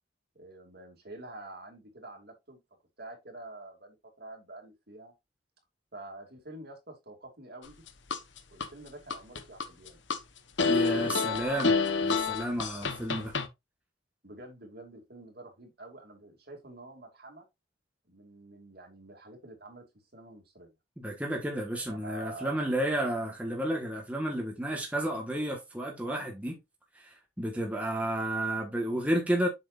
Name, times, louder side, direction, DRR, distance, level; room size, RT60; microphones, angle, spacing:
voice 1, 0.3-2.6 3.0-5.1 5.9-7.8 8.5-10.0 10.9-12.6 14.2-17.4 18.1-19.9 20.1-20.7 21.9-22.7, right 2 dB, 55° right, 2.5 m, -47 dB
sound 1, 7.6-8.7 9.1-10.2 10.6-13.5, left 4 dB, 75° left, 1.1 m, -28 dB
voice 2, 10.7-11.7 12.0-13.3 21.0-26.6 26.9-29.5, right 1 dB, 5° right, 1.4 m, -31 dB
7.8 x 6.2 x 2.5 m
head